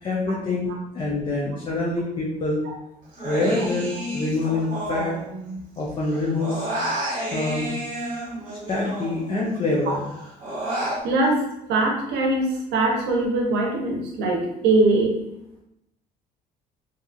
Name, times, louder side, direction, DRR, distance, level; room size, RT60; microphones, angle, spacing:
voice 1, 0.0-2.6 3.2-5.2 5.8-6.7 7.0-7.7 8.7-10.0, left 2 dB, 30° left, -4 dB, 0.5 m, -26 dB
Human voice, 3.1-5.8 6.0-9.5 9.9-11.0, right 1 dB, 55° right, 1.3 m, -30 dB
voice 2, 11.0-11.4 11.7-15.2, right 2 dB, 85° right, 1 dB, 0.7 m, -22 dB
2.8 x 2.4 x 2.4 m, 0.81 s
cardioid pair, 110°, 17 cm